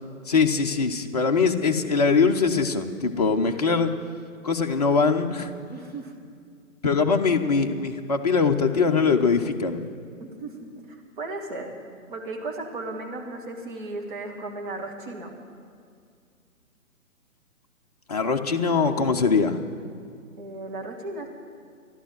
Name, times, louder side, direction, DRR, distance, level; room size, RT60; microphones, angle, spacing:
voice 1, 0.3-3.9 4.4-5.5 6.8-9.8 18.1-19.6, left 5 dB, 30° left, 4 dB, 0.7 m, -22 dB
voice 2, 5.7-6.1 10.2-11.8 12.1-15.3 20.4-21.3, right 2 dB, 35° right, 0 dB, 2.2 m, -35 dB
14.5 x 11.5 x 7.5 m, 2.2 s
figure-of-eight pair, 135°, 42 cm